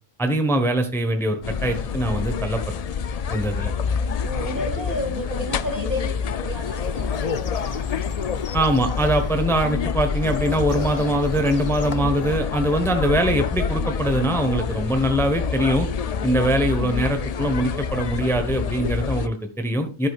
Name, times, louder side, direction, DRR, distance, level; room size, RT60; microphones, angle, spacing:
voice 1, 0.2-2.7 3.3-3.7 8.5-15.9 16.2-20.1, right 1 dB, ahead, 6 dB, 1.0 m, -22 dB
sound 1, 1.4-19.3, left 6 dB, 80° left, 0.3 m, -27 dB
voice 2, 4.2-7.9, equal, 45° right, 7 dB, 1.5 m, -32 dB
sound 2, 6.6-12.0, left 4 dB, 35° left, 0.6 m, -37 dB
11.5 x 8.8 x 2.4 m, 0.33 s
omnidirectional pair, 1.2 m